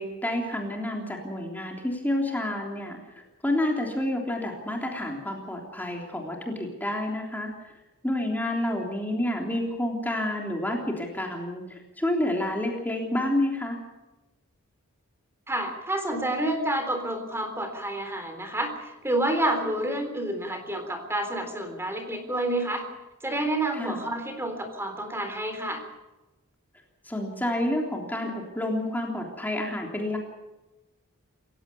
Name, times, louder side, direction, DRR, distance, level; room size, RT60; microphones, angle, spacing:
voice 1, 0.0-3.0 3.4-7.5 8.0-13.8 23.7-24.0 27.0-30.2, left 1 dB, 10° left, 0 dB, 3.5 m, -29 dB
voice 2, 15.5-22.9 23.2-25.8, right 1 dB, 10° right, 6 dB, 3.8 m, -29 dB
28.0 x 16.0 x 7.1 m, 1.1 s
head